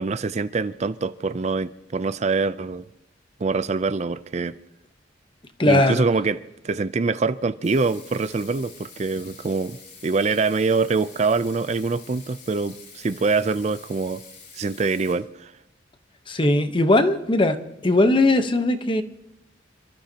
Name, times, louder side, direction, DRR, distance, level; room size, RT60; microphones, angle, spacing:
voice 1, 0.0-2.8 3.4-4.5 5.6-14.2 14.5-15.5, right 4 dB, 35° right, 0.4 m, -24 dB
voice 2, 5.6-6.0 16.3-17.6 17.8-19.0, left 2 dB, 25° left, 0.9 m, -19 dB
Water tap faucet / Sink (filling or washing), 7.6-15.1, left 5 dB, 55° left, 7.5 m, -46 dB
27.5 x 13.5 x 2.9 m
head